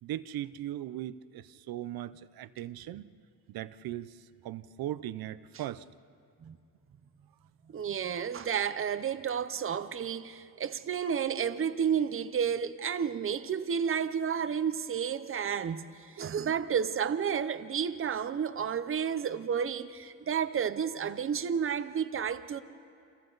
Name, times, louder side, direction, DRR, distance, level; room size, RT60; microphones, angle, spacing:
voice 1, 0.0-3.1 3.5-5.9, right 12 dB, 75° right, 0.7 m, -39 dB
voice 2, 7.7-22.6, right 7 dB, 35° right, 0.7 m, -31 dB
30.0 x 28.0 x 4.0 m
cardioid pair, 170°, 37 cm